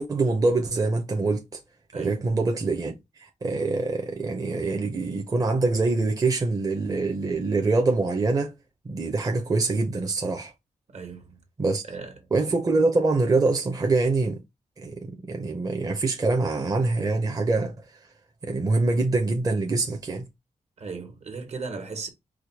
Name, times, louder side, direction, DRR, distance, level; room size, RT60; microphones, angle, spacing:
voice 1, 0.0-1.4 2.0-8.5 8.8-10.5 11.6-11.8 12.3-14.4 14.8-18.0 18.4-20.3, right 3 dB, 30° right, 0.7 m, -25 dB
voice 2, 1.9-2.2 10.9-11.4 11.9-12.1 20.8-22.1, right 4 dB, 60° right, 1.5 m, -36 dB
4.9 x 2.2 x 4.6 m
wide cardioid pair, 120°, 13 cm